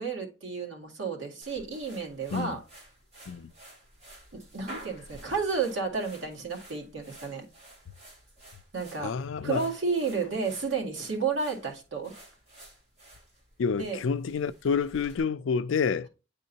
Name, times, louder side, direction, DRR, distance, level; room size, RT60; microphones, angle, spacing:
voice 1, 0.0-2.6 4.3-7.5 8.7-9.1 9.4-12.1 13.8-14.0, right 4 dB, 85° right, 1.9 m, -32 dB
sound 1, 1.4-15.2, right 1 dB, 35° right, 2.5 m, -51 dB
voice 2, 9.0-9.6 13.6-16.1, left 5 dB, 80° left, 0.4 m, -28 dB
9.4 x 3.6 x 2.7 m
head